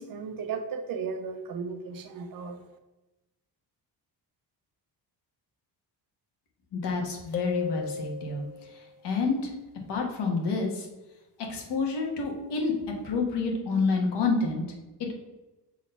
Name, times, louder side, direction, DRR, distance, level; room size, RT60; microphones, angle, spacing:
voice 1, 0.0-2.6, right 5 dB, 55° right, 6 dB, 0.8 m, -35 dB
voice 2, 6.7-8.4 9.0-9.5 9.9-10.9 11.5-12.7 13.0-14.6 15.0-15.2, left 4 dB, 85° left, 0 dB, 1.5 m, -28 dB
sound 1, 7.3-8.8, left 8 dB, 60° left, 1.1 m, -34 dB
6.4 x 3.1 x 5.4 m, 1.1 s
cardioid pair, 155°, 40 cm